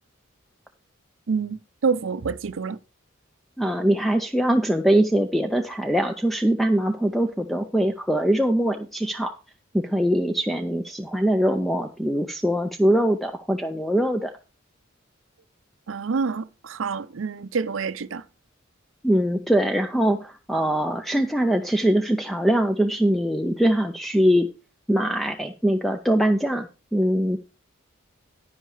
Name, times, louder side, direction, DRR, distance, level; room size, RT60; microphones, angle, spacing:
voice 1, 1.3-2.8 15.9-18.2, right 5 dB, 70° right, 0.5 m, -27 dB
voice 2, 3.6-9.3 9.7-14.3 19.0-24.5 24.9-27.5, right 1 dB, ahead, 0.5 m, -22 dB
10.0 x 10.0 x 3.2 m
head